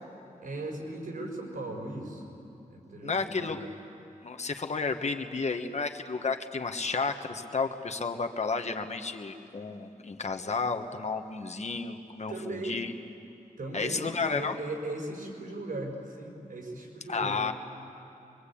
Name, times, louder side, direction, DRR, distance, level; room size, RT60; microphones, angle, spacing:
voice 1, 0.4-2.3 2.7-3.5 12.3-12.8 13.6-14.0 14.3-17.4, right 2 dB, 85° right, 1 dB, 5.1 m, -38 dB
voice 2, 3.0-3.6 4.2-12.9 13.7-14.6 17.1-17.5, left 4 dB, 55° left, 5 dB, 1.3 m, -32 dB
24.0 x 23.5 x 8.6 m, 2.9 s
wide cardioid pair, 110°, 14 cm